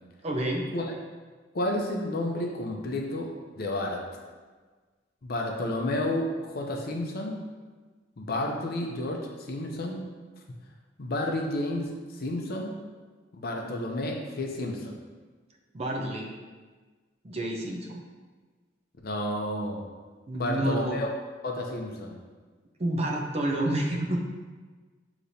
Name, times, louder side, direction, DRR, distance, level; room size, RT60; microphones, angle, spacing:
voice 1, 0.2-0.7 15.7-16.3 17.2-18.0 20.3-21.0 22.8-24.2, right 1 dB, 30° right, 0 dB, 0.5 m, -29 dB
voice 2, 1.5-4.0 5.2-7.4 8.2-10.1 11.0-12.7 13.3-15.0 19.0-19.8 20.3-21.1 21.4-22.2, left 1 dB, 50° left, 1 dB, 0.6 m, -31 dB
6.6 x 3.0 x 2.7 m, 1.4 s
head